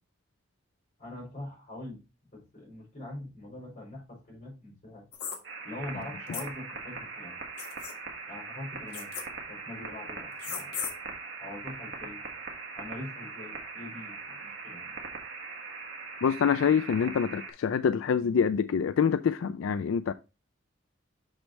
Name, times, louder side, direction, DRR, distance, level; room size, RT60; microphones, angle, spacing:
voice 1, 1.0-2.0 2.3-5.1 5.6-7.4 8.3-9.1 9.5-10.9 11.4-12.4 12.7-15.0, left 1 dB, 35° left, 4.7 m, -43 dB
sound 1, 5.1-5.4 6.3-6.5 7.6-7.9 8.9-9.2 10.4-10.9, left 6 dB, 55° left, 1.6 m, -36 dB
sound 2, 5.4-17.5, right 4 dB, 65° right, 1.7 m, -41 dB
voice 2, 16.2-20.1, left 6 dB, 85° left, 0.4 m, -26 dB
6.3 x 6.2 x 3.2 m
head